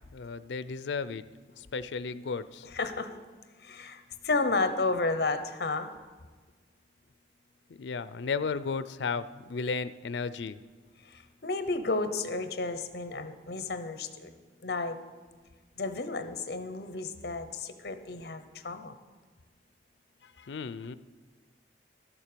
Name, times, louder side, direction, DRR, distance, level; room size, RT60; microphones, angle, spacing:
voice 1, 0.1-1.2 1.6-2.7 7.8-10.6 20.2-20.9, left 5 dB, 85° left, 15 dB, 0.5 m, -34 dB
voice 2, 2.7-3.2 3.7-5.9 11.4-14.3 14.6-15.0 15.8-18.9, left 3 dB, 60° left, 9 dB, 0.9 m, -32 dB
12.0 x 7.4 x 6.8 m, 1.4 s
head